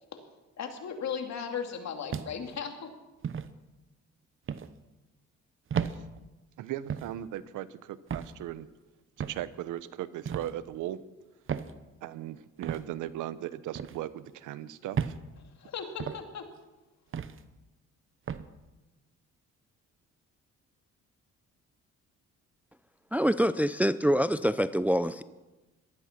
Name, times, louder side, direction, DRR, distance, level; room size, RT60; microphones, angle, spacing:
voice 1, 0.6-2.9 15.6-16.4, left 6 dB, 60° left, 2.7 m, -36 dB
sound 1, 2.1-2.6 3.2-3.5 4.5-4.7 5.7-6.0 6.9-7.1 8.1-8.4 9.2-9.5 10.3-10.5 11.5-11.7 12.6-12.8 13.8-14.0 15.0-15.2 16.0-16.2 17.1-17.4 18.3-18.5, right 7 dB, 45° right, 0.9 m, -33 dB
voice 2, 6.6-8.7 9.2-11.0 12.0-15.1, right 13 dB, 85° right, 0.8 m, -38 dB
voice 3, 23.1-25.2, equal, 5° right, 0.5 m, -25 dB
19.0 x 13.0 x 6.0 m
cardioid pair, 90°, 30 cm